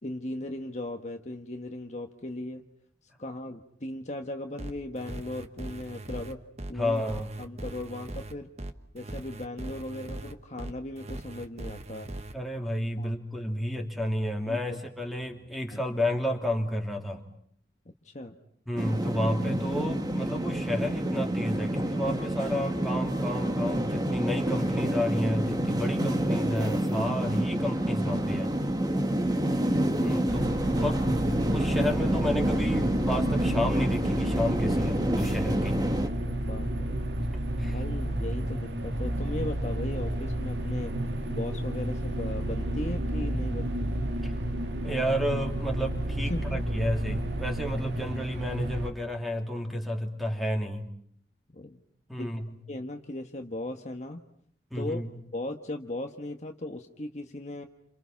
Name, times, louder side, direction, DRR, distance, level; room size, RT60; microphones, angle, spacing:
voice 1, 0.0-2.6 3.2-6.4 6.7-7.0 7.4-8.5 8.9-12.1 13.0-13.1 14.5-14.8 15.7-15.8 17.8-18.4 29.2-30.3 30.8-30.9 36.2-37.0 37.7-40.9 41.3-43.9 46.3-46.6 51.5-51.8 52.2-52.3 52.7-54.2 54.7-55.0 55.3-57.7, left 1 dB, 40° left, 4 dB, 1.4 m, -37 dB
sound 1, 4.6-12.3, right 1 dB, 40° right, 1.3 m, -40 dB
voice 2, 6.8-7.3 12.3-17.2 18.7-28.5 30.0-30.5 30.8-31.1 31.5-35.8 37.3-37.8 44.8-50.9 52.1-52.5 54.7-55.1, left 1 dB, ahead, 2 dB, 3.0 m, -31 dB
sound 2, 18.8-36.1, right 1 dB, 20° right, 1.5 m, -28 dB
sound 3, 30.3-48.9, right 1 dB, 80° right, 2.2 m, -31 dB
30.0 x 28.0 x 5.9 m, 0.65 s
head